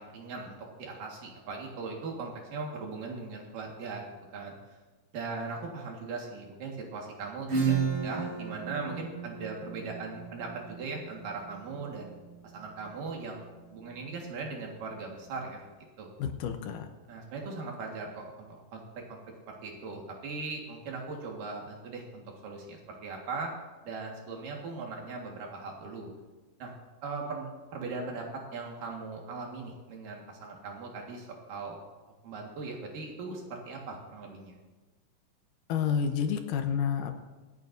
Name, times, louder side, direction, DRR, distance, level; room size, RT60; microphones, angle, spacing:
voice 1, 0.0-4.0 4.3-4.5 5.1-12.1 12.5-15.6 16.0-16.1 17.1-18.8 19.1-19.2 19.5-23.5 23.8-26.1 26.6-26.7 27.0-31.8 32.2-34.5, right 4 dB, 75° right, 0 dB, 3.3 m, -39 dB
Acoustic guitar / Strum, 7.5-12.9, right 6 dB, 55° right, 4.9 m, -33 dB
voice 2, 16.2-16.9 35.7-37.2, left 7 dB, 75° left, 6 dB, 2.3 m, -29 dB
25.5 x 9.1 x 2.6 m, 1.2 s
omnidirectional pair, 4.0 m